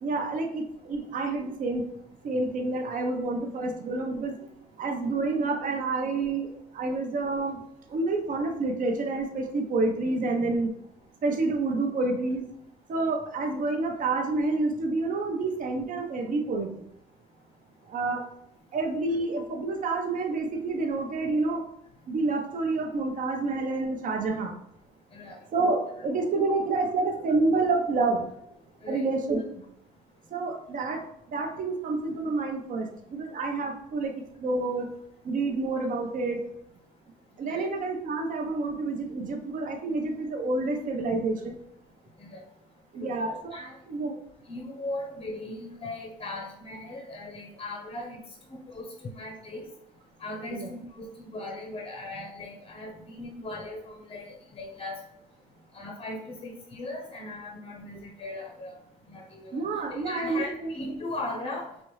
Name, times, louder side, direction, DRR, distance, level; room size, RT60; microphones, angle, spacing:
voice 1, 0.0-1.8 2.2-4.4 4.8-7.6 7.9-10.7 11.2-12.5 12.9-16.8 17.9-18.3 18.7-21.6 22.1-24.5 25.5-28.2 28.9-29.4 30.3-31.0 31.3-34.9 35.2-36.4 37.4-41.5 42.9-43.6 43.9-44.2 50.5-50.7 59.5-60.7, right 3 dB, 50° right, 4 dB, 0.8 m, -28 dB
voice 2, 44.5-48.2 48.5-49.7 50.2-55.0 55.7-58.7 59.1-61.7, left 2 dB, 35° left, 1 dB, 0.7 m, -38 dB
4.5 x 2.7 x 3.1 m, 0.75 s
cardioid pair, 110°, 17 cm